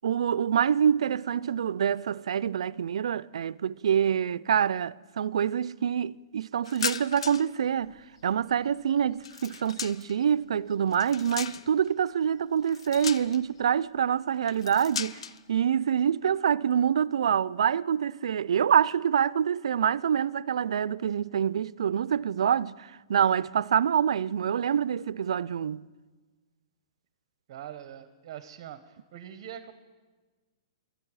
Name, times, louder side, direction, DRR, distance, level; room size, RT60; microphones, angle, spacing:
voice 1, 0.0-7.9 8.2-15.2 15.5-25.8, right 8 dB, 80° right, 0.3 m, -26 dB
sound 1, 6.7-7.6 7.8-10.2 10.7-11.9 12.6-13.6 14.4-15.4, left 7 dB, 75° left, 0.5 m, -37 dB
voice 2, 27.5-29.7, right 10 dB, 40° right, 0.7 m, -43 dB
19.0 x 12.5 x 4.8 m
hypercardioid pair, 165°, 3 cm